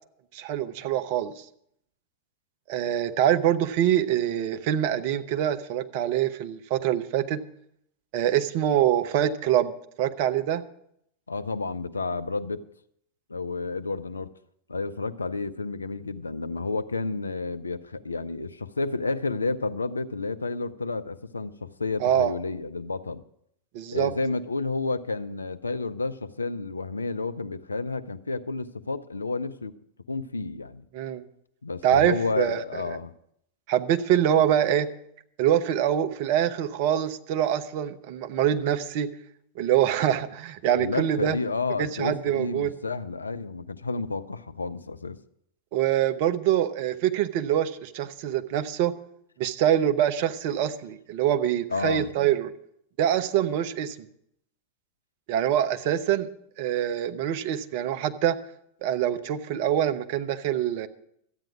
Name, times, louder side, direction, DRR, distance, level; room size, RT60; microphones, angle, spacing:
voice 1, 0.3-1.4 2.7-7.4 8.1-9.7 10.0-10.6 22.0-22.3 23.7-24.1 30.9-31.2 31.8-32.6 33.7-34.9 35.4-39.1 39.6-41.4 41.8-42.7 45.7-48.9 49.4-52.5 53.0-54.1 55.3-56.3 56.6-58.4 58.8-60.9, right 10 dB, 45° right, 9 dB, 0.8 m, -24 dB
voice 2, 11.3-12.6 13.3-14.3 14.7-23.2 23.9-29.7 30.1-30.8 31.6-33.1 40.8-45.2 51.7-52.1, left 3 dB, 75° left, 12 dB, 0.5 m, -31 dB
13.0 x 9.0 x 5.9 m, 0.72 s
figure-of-eight pair, 90°, 0 cm